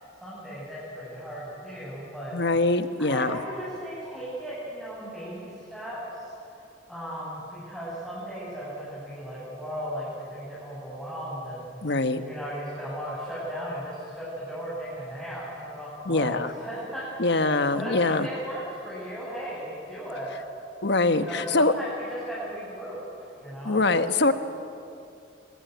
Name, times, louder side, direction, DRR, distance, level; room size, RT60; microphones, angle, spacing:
voice 1, 0.2-2.4 3.0-6.6 6.9-20.4 21.0-23.8, equal, ahead, -9 dB, 7.1 m, -36 dB
voice 2, 2.3-3.4 11.8-12.2 16.1-16.5 17.2-18.3 20.8-21.7 23.6-24.3, left 2 dB, 65° left, 10 dB, 1.2 m, -23 dB
24.5 x 19.0 x 9.3 m, 2.7 s
head